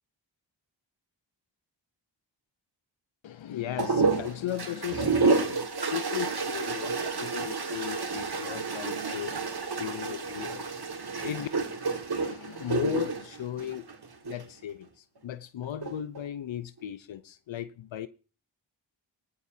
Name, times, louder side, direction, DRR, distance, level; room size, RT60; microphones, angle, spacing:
voice 1, 3.2-9.3 9.8-10.8 11.1-11.5 12.2-13.8 14.3-18.1, left 11 dB, 75° left, 0.7 m, -36 dB
sound 1, 3.8-14.5 15.6-16.2, right 4 dB, 55° right, 1.9 m, -30 dB
18.0 x 14.5 x 2.7 m
cardioid pair, 40°, 46 cm